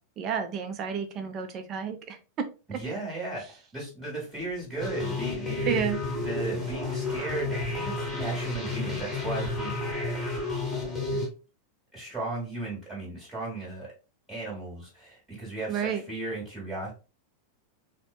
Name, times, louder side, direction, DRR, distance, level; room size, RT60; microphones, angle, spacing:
voice 1, 0.2-2.5 2.7-2.8 5.7-6.0 15.7-16.0, right 7 dB, 35° right, 7 dB, 0.5 m, -31 dB
voice 2, 2.7-5.8 6.2-9.7 11.2-11.3 11.9-13.9 14.3-16.9, right 2 dB, 15° right, -5 dB, 1.4 m, -36 dB
sound 1, 4.8-11.3, left 2 dB, 5° left, 1.4 m, -31 dB
4.1 x 2.2 x 2.3 m, 0.33 s
figure-of-eight pair, 90°, 0 cm